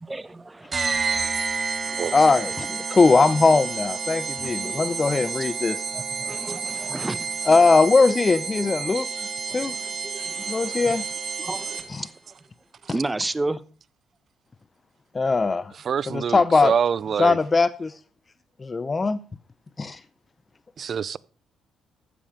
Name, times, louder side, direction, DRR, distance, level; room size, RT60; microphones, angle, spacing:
voice 1, 0.0-1.3 4.4-4.8 5.9-7.6 8.1-8.2 8.6-8.7 9.5-10.9 11.4-12.1 12.9-13.6, right 2 dB, 15° right, 0.8 m, -33 dB
sound 1, 0.7-12.1, right 5 dB, 35° right, 1.6 m, -30 dB
voice 2, 2.1-5.8 7.5-9.1 9.5-9.7 10.5-11.0 11.9-12.1 15.1-15.7 16.1-16.7 17.2-17.9 18.6-19.2 19.8-20.0, left 3 dB, 30° left, 0.6 m, -20 dB
voice 3, 15.8-17.4 20.8-21.2, right 7 dB, 55° right, 0.5 m, -25 dB
14.5 x 7.4 x 5.0 m
cardioid pair, 90°, 0 cm